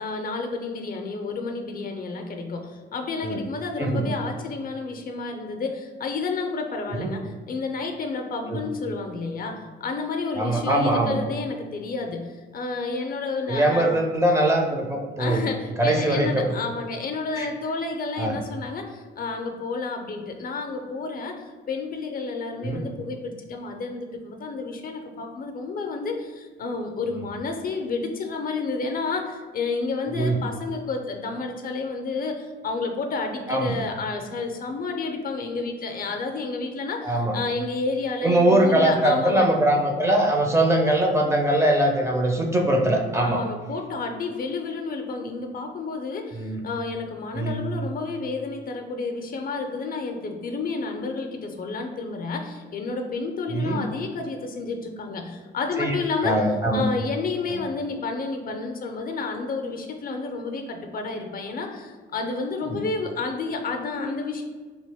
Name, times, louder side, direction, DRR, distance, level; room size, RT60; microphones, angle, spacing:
voice 1, 0.0-13.9 15.2-21.3 21.7-39.5 43.2-56.4 56.7-64.4, left 4 dB, 45° left, 4 dB, 0.4 m, -30 dB
voice 2, 10.3-11.2 13.5-15.4 15.8-16.5 17.4-17.5 18.2-18.3 22.6-22.8 30.1-30.4 33.5-33.8 37.0-37.4 38.2-43.4 46.3-46.6 47.3-47.6 53.5-53.8 55.8-56.0 56.2-56.8 57.5-57.6 62.7-62.8, right 1 dB, 15° right, 1 dB, 0.4 m, -22 dB
2.8 x 2.6 x 3.4 m, 1.4 s
cardioid pair, 90°, 20 cm